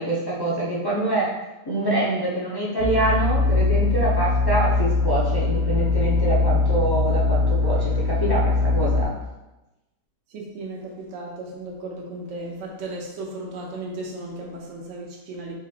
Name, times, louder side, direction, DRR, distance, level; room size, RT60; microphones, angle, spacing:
voice 1, 0.0-1.3 1.7-9.2, right 2 dB, 35° left, -7 dB, 0.3 m, -25 dB
sound 1, 2.8-9.0, left 3 dB, 85° left, 1.9 m, -21 dB
voice 2, 10.3-15.6, right 2 dB, 55° right, -2 dB, 1.0 m, -35 dB
5.0 x 4.2 x 2.5 m, 1.0 s
omnidirectional pair, 1.8 m